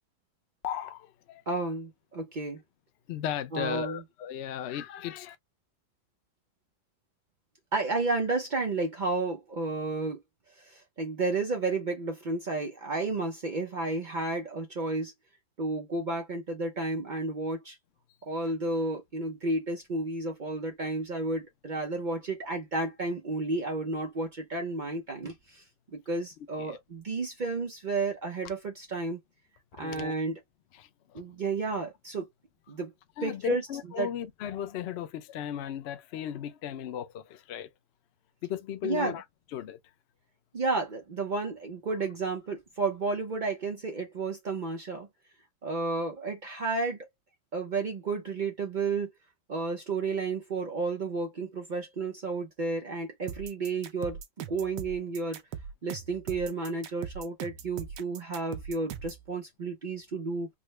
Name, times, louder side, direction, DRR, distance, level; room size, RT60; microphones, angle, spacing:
voice 1, 0.6-1.4 3.1-5.4 26.4-26.8 29.8-30.1 30.7-31.2 33.2-37.7 38.4-39.2 39.5-39.8, left 10 dB, 65° left, 0.6 m, -36 dB
voice 2, 1.5-2.6 3.5-4.0 7.7-10.2 10.6-15.1 15.6-17.8 18.3-25.6 25.9-29.2 29.8-30.3 31.1-32.3 32.7-32.9 33.2-33.6 34.0-34.1 38.8-39.1 40.5-45.1 45.6-47.0 47.5-49.1 49.5-55.4 55.8-60.5, right 3 dB, 65° right, 0.4 m, -32 dB
sound 1, 53.3-59.3, right 8 dB, 90° right, 1.2 m, -40 dB
3.7 x 2.1 x 3.1 m
omnidirectional pair, 1.7 m